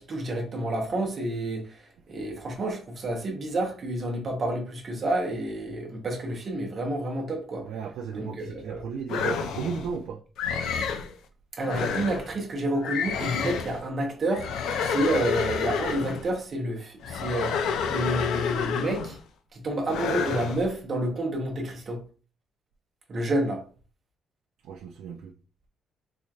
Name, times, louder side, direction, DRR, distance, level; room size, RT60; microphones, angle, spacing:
voice 1, 0.0-1.8 2.1-7.7 8.1-8.8 11.6-14.5 14.8-19.2 19.5-22.0 23.1-23.6, right 1 dB, 35° right, 1.0 m, -29 dB
voice 2, 7.6-10.2 24.6-25.3, right 6 dB, 85° right, 0.4 m, -35 dB
sound 1, 9.1-9.9 10.4-11.1 11.6-12.3 12.8-13.8 14.3-16.3 17.0-19.2 19.9-20.7, left 6 dB, 85° left, 0.5 m, -29 dB
4.2 x 3.2 x 2.4 m
cardioid pair, 170°, 0 cm